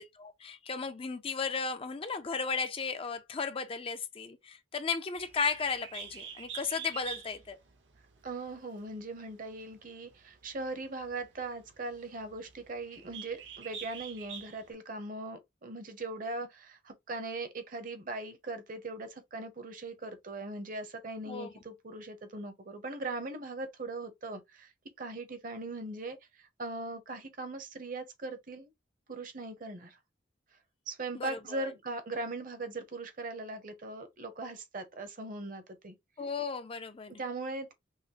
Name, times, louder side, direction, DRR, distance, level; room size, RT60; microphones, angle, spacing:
voice 1, 0.0-7.6 21.3-21.5 31.1-31.7 36.2-37.2, left 5 dB, 30° left, 0.4 m, -35 dB
Bird, 5.2-14.7, right 8 dB, 75° right, 0.9 m, -47 dB
voice 2, 8.2-24.7 25.0-28.7 29.1-30.0 30.9-35.9 37.2-37.7, right 2 dB, 45° right, 0.8 m, -40 dB
5.6 x 2.0 x 2.8 m
head